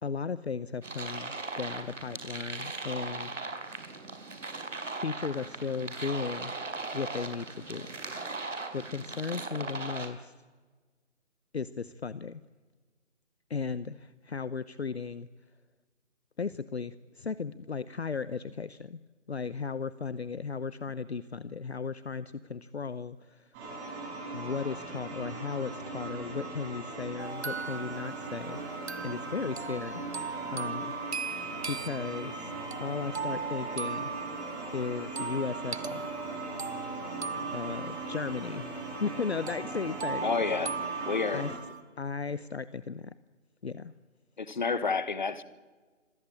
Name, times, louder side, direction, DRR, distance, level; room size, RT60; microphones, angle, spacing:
voice 1, 0.0-3.3 5.0-6.5 6.9-7.9 8.7-10.3 11.5-12.4 13.5-15.3 16.4-19.0 19.3-23.5 24.3-30.0 30.5-30.9 31.7-32.5 32.8-34.1 34.7-36.0 37.5-40.4 41.3-41.5 42.0-43.1 43.6-43.9, left 5 dB, 55° left, 0.9 m, -36 dB
sound 1, 0.8-10.1, right 3 dB, 80° right, 4.8 m, -39 dB
sound 2, 23.5-41.5, right 3 dB, 10° right, 7.6 m, -39 dB
sound 3, 27.2-39.2 39.5-41.8, right 5 dB, 60° right, 1.0 m, -39 dB
voice 2, 40.2-40.8 41.1-41.5 44.4-45.4, left 4 dB, 40° left, 1.4 m, -29 dB
26.0 x 16.0 x 8.7 m
figure-of-eight pair, 170°, 37 cm